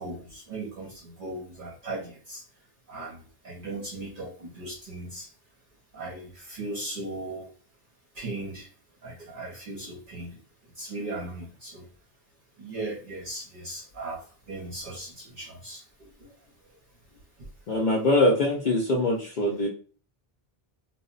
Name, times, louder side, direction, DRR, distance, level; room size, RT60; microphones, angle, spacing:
voice 1, 0.0-2.4 2.9-5.3 5.9-7.5 8.1-8.7 9.0-10.4 10.8-11.9 12.6-16.3, right 2 dB, 60° right, -3 dB, 0.8 m, -38 dB
voice 2, 17.7-19.7, left 1 dB, 60° left, 0 dB, 0.6 m, -23 dB
2.1 x 2.0 x 3.7 m, 0.41 s
omnidirectional pair, 1.0 m